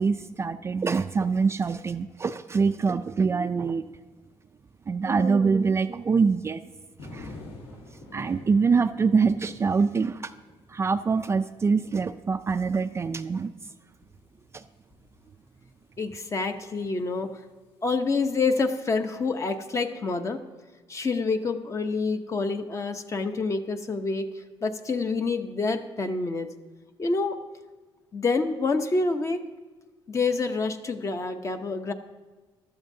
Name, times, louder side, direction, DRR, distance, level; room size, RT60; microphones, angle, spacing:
voice 1, 0.0-3.9 4.9-6.6 7.1-7.3 8.1-10.3 10.7-13.5 14.5-14.6, right 5 dB, 25° right, 10 dB, 0.3 m, -24 dB
sound 1, 7.0-17.1 18.6-18.8, left 2 dB, 70° left, 1.7 m, -49 dB
voice 2, 16.0-17.3 17.8-20.4 20.9-24.3 24.6-26.5 27.0-27.4 28.1-29.4 30.1-31.9, left 3 dB, 30° left, 7 dB, 0.8 m, -27 dB
15.5 x 12.0 x 2.7 m, 1.3 s
cardioid pair, 115°, 10 cm